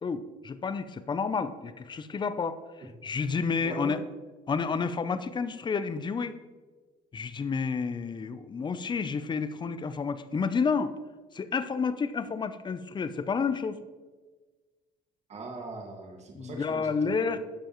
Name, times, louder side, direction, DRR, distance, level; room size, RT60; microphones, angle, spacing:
voice 1, 0.0-2.6 3.0-4.0 4.5-6.3 7.1-10.9 11.3-13.8 16.4-17.4, left 5 dB, 25° left, 12 dB, 0.6 m, -30 dB
voice 2, 3.6-4.0 15.3-17.4, right 2 dB, 40° right, 1 dB, 1.9 m, -40 dB
11.5 x 7.0 x 3.1 m, 1.3 s
cardioid pair, 110°, 17 cm